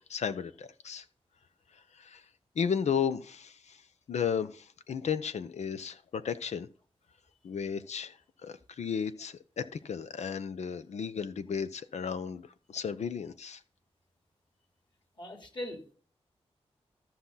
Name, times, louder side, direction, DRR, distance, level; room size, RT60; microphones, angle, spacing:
voice 1, 0.1-1.0 1.9-2.2 2.5-3.8 4.1-6.7 7.4-13.6, left 7 dB, 85° left, 0.8 m, -34 dB
voice 2, 15.2-15.9, left 1 dB, 45° left, 3.5 m, -40 dB
14.0 x 5.9 x 4.0 m
cardioid pair, 60°, 11 cm